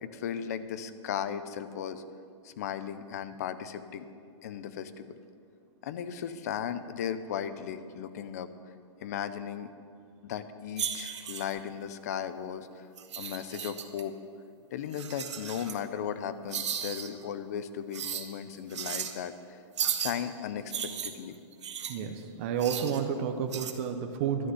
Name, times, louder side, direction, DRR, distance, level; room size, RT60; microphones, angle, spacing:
voice 1, 0.0-2.0 2.4-4.1 4.4-5.1 5.8-8.5 9.0-9.7 10.2-12.8 13.2-14.1 14.7-19.6 19.9-21.4, left 8 dB, 35° left, 12 dB, 0.5 m, -36 dB
sound 1, 10.8-11.6 13.0-14.0 14.9-15.8 16.5-17.1 17.9-18.3 18.7-19.1 19.8-20.2 20.7-22.0 22.6-23.0 23.5-23.7, right 8 dB, 70° right, 1.1 m, -35 dB
voice 2, 21.9-24.5, right 7 dB, 25° right, 5 dB, 0.6 m, -31 dB
11.5 x 6.5 x 9.5 m, 2.4 s
hypercardioid pair, 175°, 15 cm